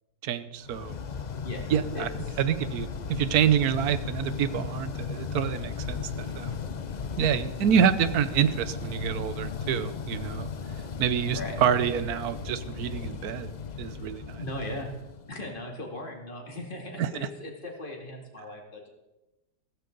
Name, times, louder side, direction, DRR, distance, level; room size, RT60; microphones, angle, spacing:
voice 1, 0.2-0.9 1.7-2.1 2.4-6.6 7.2-10.5 11.0-13.5 13.8-14.4 17.0-17.3, right 9 dB, 65° right, 13 dB, 1.2 m, -27 dB
sound 1, 0.6-15.7, left 6 dB, 80° left, 0.4 m, -36 dB
voice 2, 1.4-2.4 11.3-11.6 14.4-14.9 15.3-18.9, left 1 dB, 30° left, 1 dB, 2.6 m, -38 dB
15.5 x 15.0 x 4.0 m, 1.0 s
omnidirectional pair, 1.8 m